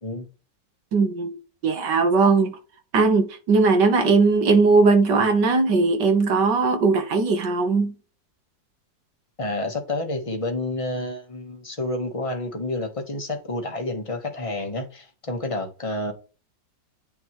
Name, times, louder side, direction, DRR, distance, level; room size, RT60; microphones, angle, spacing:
voice 1, 0.9-1.4 1.6-2.5 2.9-7.9, right 4 dB, 70° right, 1.8 m, -19 dB
voice 2, 9.4-16.1, left 2 dB, 20° left, 1.1 m, -29 dB
9.3 x 3.5 x 3.1 m
omnidirectional pair, 2.0 m